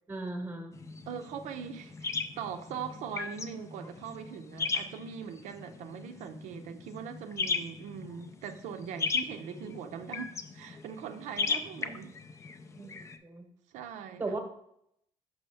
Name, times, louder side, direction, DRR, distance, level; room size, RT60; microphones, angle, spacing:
voice 1, 0.1-0.7 9.5-9.7 12.8-13.4 14.2-14.4, right 2 dB, 15° right, 0.9 m, -37 dB
sound 1, 0.7-13.2, left 4 dB, 25° left, 0.4 m, -37 dB
voice 2, 1.1-12.1 13.7-14.4, right 7 dB, 80° right, 0.5 m, -41 dB
6.0 x 5.5 x 3.3 m
cardioid pair, 150°, 12 cm